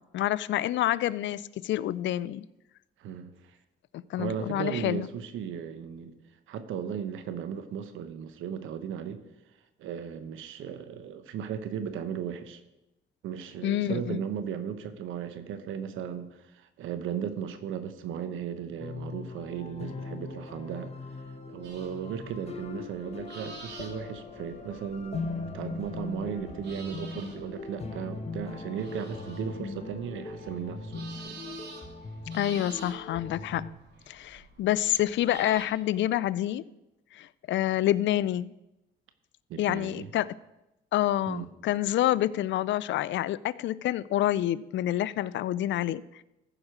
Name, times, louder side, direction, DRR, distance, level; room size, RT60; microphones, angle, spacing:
voice 1, 0.0-2.4 3.9-5.1 13.6-14.2 32.3-33.6 34.1-36.6 37.1-38.5 39.6-40.3 40.9-46.0, left 13 dB, 70° left, 0.4 m, -28 dB
voice 2, 3.0-3.6 4.2-6.1 6.5-9.2 9.8-12.6 13.2-20.9 21.5-31.3 39.5-40.1 41.3-41.5, right 8 dB, 85° right, 1.0 m, -36 dB
sound 1, 18.8-33.7, left 3 dB, 30° left, 1.5 m, -40 dB
sound 2, 21.6-35.6, right 3 dB, 60° right, 2.7 m, -50 dB
15.0 x 5.0 x 6.1 m
cardioid pair, 90°, 20 cm